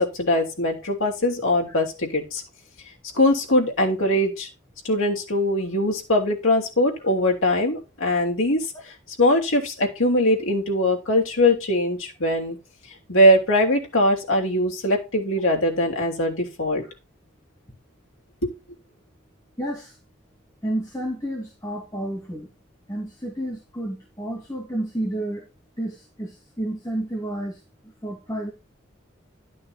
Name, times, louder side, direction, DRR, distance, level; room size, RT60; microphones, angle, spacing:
voice 1, 0.0-2.4 3.1-4.5 4.9-8.6 9.2-12.6 13.1-16.8 18.4-18.5, left 1 dB, 80° left, 0 dB, 3.4 m, -21 dB
voice 2, 19.6-19.9 20.6-22.5 22.9-25.4 25.8-27.6 28.0-28.5, right 1 dB, 15° left, -2 dB, 2.6 m, -30 dB
11.5 x 6.2 x 4.3 m, 0.28 s
head